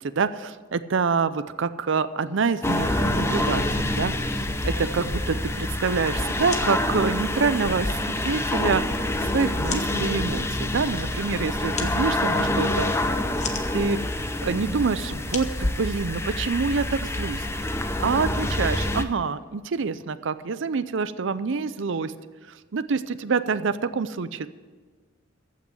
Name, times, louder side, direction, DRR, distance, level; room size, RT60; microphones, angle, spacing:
voice 1, 0.0-8.8 9.2-12.9 13.7-22.1 22.7-24.5, right 5 dB, 65° right, 14 dB, 0.5 m, -27 dB
sound 1, 2.6-19.0, left 1 dB, 15° left, 0.6 m, -26 dB
sound 2, 6.4-16.5, left 6 dB, 35° left, 1.1 m, -41 dB
14.5 x 6.1 x 8.1 m, 1.4 s
head